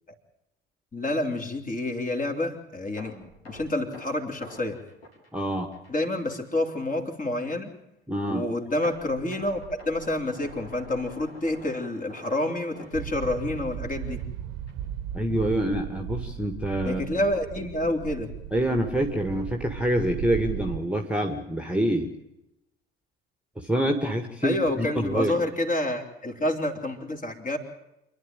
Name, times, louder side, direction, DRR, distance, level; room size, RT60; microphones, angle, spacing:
voice 1, 0.9-3.2 3.4-4.8 5.9-7.8 8.3-14.2 16.9-18.3 24.4-27.6, left 1 dB, 25° left, 3 dB, 3.4 m, -28 dB
sound 1, 3.0-6.0 6.3-6.5 7.0-7.1 8.8-13.7 14.0-14.2 14.7-14.8, equal, 85° left, 3.7 m, -47 dB
voice 2, 5.3-5.7 8.1-8.4 15.1-17.2 18.5-22.1 23.6-25.3, right 1 dB, 5° right, 5 dB, 2.0 m, -26 dB
sound 2, 12.9-20.8, right 10 dB, 55° right, 1.4 m, -36 dB
27.0 x 11.0 x 9.1 m, 0.87 s
figure-of-eight pair, 60°, 30 cm